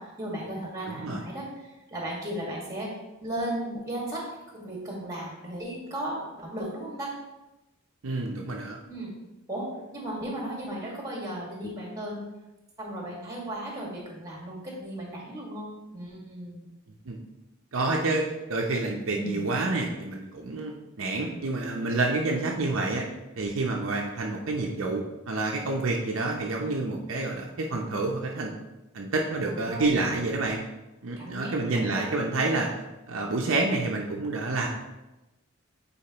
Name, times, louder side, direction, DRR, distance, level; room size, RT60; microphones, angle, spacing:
voice 1, 0.0-2.9 3.2-4.2 4.5-7.1 8.8-9.1 9.5-12.3 12.8-16.7 19.1-19.5 29.5-29.8 31.2-32.2, right 1 dB, 15° right, -3 dB, 1.7 m, -35 dB
voice 2, 8.0-8.8 17.1-17.2 17.7-23.0 23.4-28.5 28.9-30.6 31.0-32.7 33.1-34.7, right 2 dB, 65° right, 0 dB, 0.6 m, -28 dB
8.6 x 4.3 x 2.9 m, 1.0 s
head